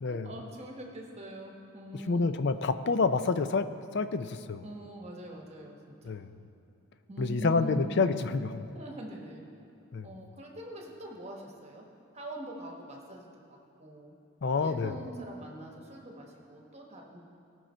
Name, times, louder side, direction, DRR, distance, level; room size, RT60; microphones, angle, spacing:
voice 1, 0.0-2.2 4.6-6.2 7.1-7.9 8.7-9.4 10.0-11.8 12.1-14.1 14.5-17.2, right 1 dB, 30° right, 0 dB, 1.2 m, -43 dB
voice 2, 1.9-4.7 6.0-6.3 7.2-8.7 9.9-10.1 14.4-15.0, left 4 dB, 50° left, 11 dB, 0.4 m, -28 dB
18.0 x 6.3 x 4.4 m, 2.9 s
head